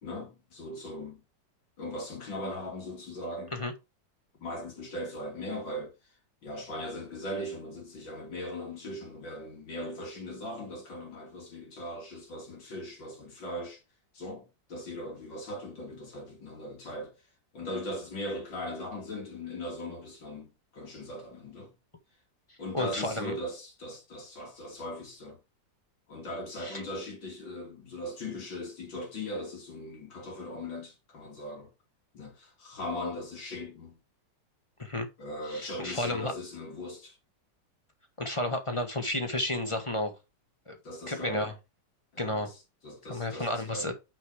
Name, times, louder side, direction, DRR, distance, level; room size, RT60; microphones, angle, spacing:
voice 1, 0.0-1.2 1.8-3.6 4.4-5.9 6.4-13.8 14.1-17.2 17.5-21.7 22.6-25.4 26.1-31.7 32.1-34.0 35.2-37.2 40.8-41.5 42.1-42.6 42.8-43.9, left 1 dB, 85° left, 3.5 m, -39 dB
voice 2, 22.7-23.3 26.6-26.8 34.8-35.1 35.5-36.3 38.2-40.1 40.7-40.8 41.1-41.5 42.2-42.5 43.0-43.9, left 1 dB, 20° left, 1.0 m, -32 dB
6.1 x 5.6 x 4.8 m
omnidirectional pair, 2.0 m